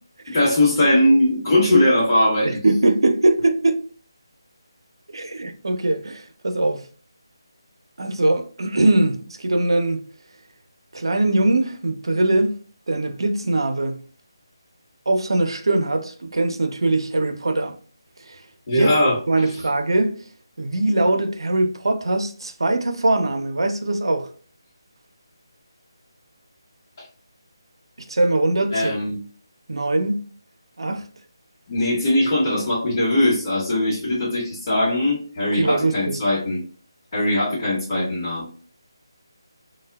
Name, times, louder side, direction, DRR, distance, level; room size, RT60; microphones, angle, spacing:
voice 1, 0.3-2.6 18.7-19.5 28.7-29.2 31.7-36.6 37.1-38.5, left 1 dB, 30° left, 0.9 m, -20 dB
voice 2, 2.4-3.8 5.1-6.8 8.0-10.0 10.9-12.6 12.9-14.0 15.1-17.7 18.3-18.4 18.7-20.2 20.6-24.3 28.1-28.9 29.7-30.2 30.8-31.1 35.5-36.2, right 2 dB, 80° right, 0.5 m, -21 dB
3.2 x 2.1 x 2.2 m
figure-of-eight pair, 165°, 3 cm